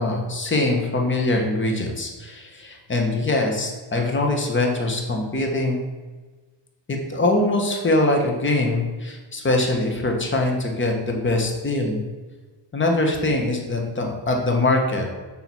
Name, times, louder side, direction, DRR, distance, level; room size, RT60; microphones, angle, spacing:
voice 1, 0.0-5.8 6.9-12.0 12.7-15.1, left 2 dB, 25° left, 2 dB, 1.5 m, -23 dB
6.5 x 5.7 x 4.6 m, 1.3 s
cardioid pair, 90°, 45 cm